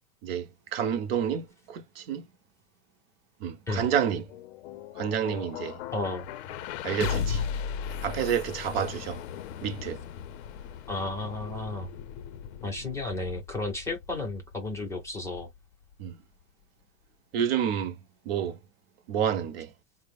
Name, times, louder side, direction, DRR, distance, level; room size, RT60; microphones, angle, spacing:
voice 1, 0.2-2.2 3.4-4.3 5.0-5.8 6.8-7.4 8.0-9.2 9.6-10.0 16.0-16.2 17.3-17.9 18.3-18.6 19.1-19.7, right 8 dB, 50° right, 0.6 m, -29 dB
sound 1, 4.1-16.1, left 7 dB, 55° left, 0.5 m, -37 dB
voice 2, 5.9-6.3 10.9-11.9 12.6-15.5, left 2 dB, 5° left, 0.5 m, -33 dB
3.9 x 2.0 x 3.4 m
supercardioid pair, 150°, 40 cm